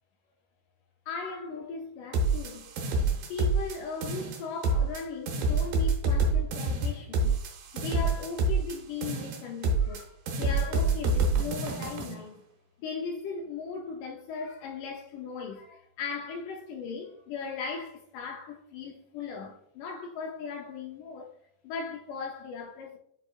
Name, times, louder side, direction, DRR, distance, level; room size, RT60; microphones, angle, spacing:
voice 1, 1.1-2.9 3.3-7.4 7.7-12.5 12.8-21.3 21.6-23.0, left 5 dB, 85° left, 1.8 m, -38 dB
sound 1, 2.1-3.8 4.0-5.0 5.3-8.8 9.0-10.0 10.3-12.1, right 2 dB, 70° right, 2.6 m, -27 dB
8.5 x 4.8 x 2.4 m
omnidirectional pair, 4.4 m